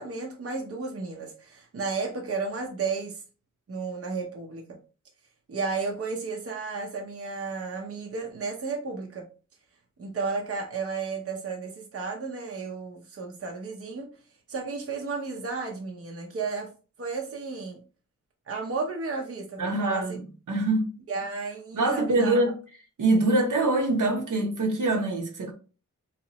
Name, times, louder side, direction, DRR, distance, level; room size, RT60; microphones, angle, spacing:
voice 1, 0.0-3.2 3.7-4.8 5.5-9.3 10.0-14.1 14.5-16.7 17.0-17.8 18.5-20.0 21.1-22.3, right 4 dB, 45° right, 0.7 m, -33 dB
voice 2, 19.6-20.9 21.7-22.5 23.0-25.5, right 2 dB, 75° right, 1.0 m, -24 dB
3.2 x 2.9 x 2.9 m
wide cardioid pair, 85°, 31 cm